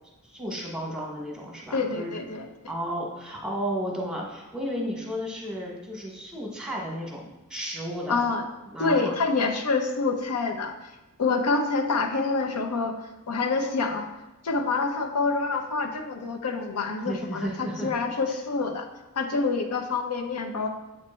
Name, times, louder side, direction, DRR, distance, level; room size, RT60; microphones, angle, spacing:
voice 1, 0.2-2.1 2.7-7.2 7.5-8.2 8.7-9.1 17.0-17.9, equal, 5° right, -2 dB, 1.0 m, -33 dB
voice 2, 1.7-2.5 8.1-8.4 8.8-10.7 11.2-13.0 13.3-14.1 14.4-18.9 19.2-20.7, left 4 dB, 90° left, 4 dB, 0.6 m, -26 dB
7.2 x 3.1 x 4.3 m, 1.0 s
head